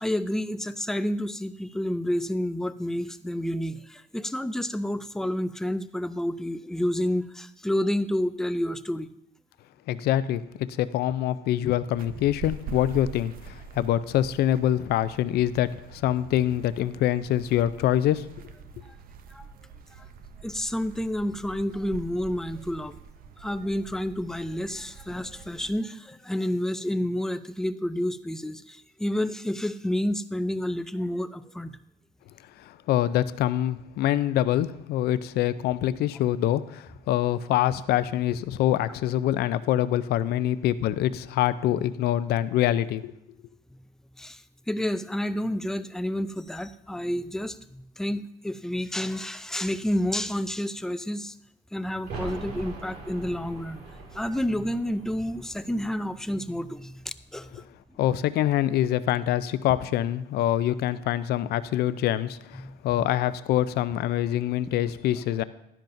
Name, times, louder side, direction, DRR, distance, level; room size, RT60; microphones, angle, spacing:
voice 1, 0.0-9.1 18.8-19.0 19.3-19.5 20.0-20.1 20.4-22.9 23.4-31.8 44.2-44.4 44.7-51.3 51.7-53.8 54.1-57.0 57.3-57.7 62.6-63.0, left 1 dB, 5° left, 12 dB, 0.4 m, -29 dB
voice 2, 9.9-18.2 32.6-43.1 58.0-65.4, left 12 dB, 70° left, 15 dB, 0.5 m, -25 dB
sound 1, 11.9-25.7, right 6 dB, 60° right, 0.6 m, -45 dB
sound 2, 52.0-57.5 57.8-57.9, right 3 dB, 75° right, 2.2 m, -42 dB
12.0 x 10.5 x 2.6 m, 0.80 s
cardioid pair, 110°, 17 cm